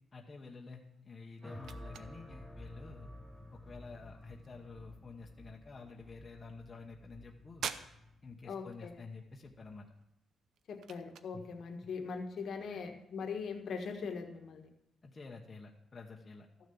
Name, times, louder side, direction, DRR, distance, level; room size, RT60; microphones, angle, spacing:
voice 1, 0.1-3.1 3.5-7.7 8.2-9.9 11.3-11.4 12.7-12.8 15.0-16.5, left 4 dB, 25° left, 0 dB, 1.0 m, -50 dB
sound 1, 0.8-15.3, right 8 dB, 65° right, 0.7 m, -52 dB
sound 2, 1.4-9.7, left 1 dB, 5° right, 0.9 m, -52 dB
voice 2, 8.5-8.9 10.7-14.7, left 5 dB, 55° left, 5 dB, 1.3 m, -41 dB
13.5 x 6.7 x 7.0 m, 0.85 s
cardioid pair, 165°, 0 cm